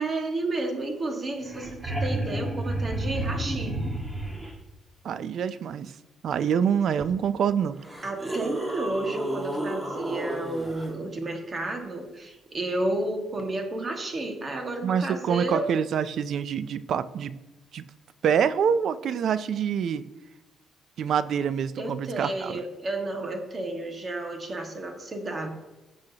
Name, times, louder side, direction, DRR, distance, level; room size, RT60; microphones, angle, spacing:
voice 1, 0.0-3.8 8.0-15.7 21.8-25.5, right 2 dB, 35° right, 3 dB, 1.7 m, -31 dB
sound 1, 1.1-1.2 1.4-4.5 7.0-7.1 7.8-10.9 13.4-13.5, right 1 dB, 15° right, 1.6 m, -31 dB
voice 2, 5.0-5.9 6.2-7.8 14.8-17.4 17.7-17.9 18.2-20.1 21.0-22.6, right 7 dB, 65° right, 14 dB, 0.5 m, -26 dB
15.5 x 6.4 x 2.9 m, 1.0 s
cardioid pair, 105°, 0 cm